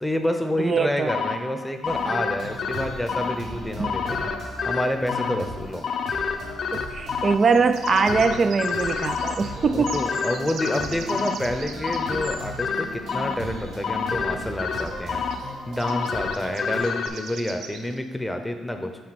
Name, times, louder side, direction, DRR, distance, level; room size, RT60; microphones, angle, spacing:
voice 1, 0.0-5.8 9.7-15.3 15.7-18.9, left 1 dB, 5° left, 6 dB, 0.7 m, -28 dB
voice 2, 0.6-1.2 3.8-3.9 6.7-10.1, right 5 dB, 40° right, 10 dB, 0.3 m, -22 dB
sound 1, 1.1-17.1, left 6 dB, 55° left, 0.5 m, -29 dB
sound 2, 1.8-16.8, right 1 dB, 70° right, 1.7 m, -38 dB
sound 3, 5.4-5.5 7.3-12.5 14.2-14.3 14.5-14.6 14.8-15.0 15.3-15.5 15.8-18.0, right 5 dB, 90° right, 0.5 m, -41 dB
7.6 x 4.1 x 4.2 m, 1.3 s
cardioid pair, 90°, 0 cm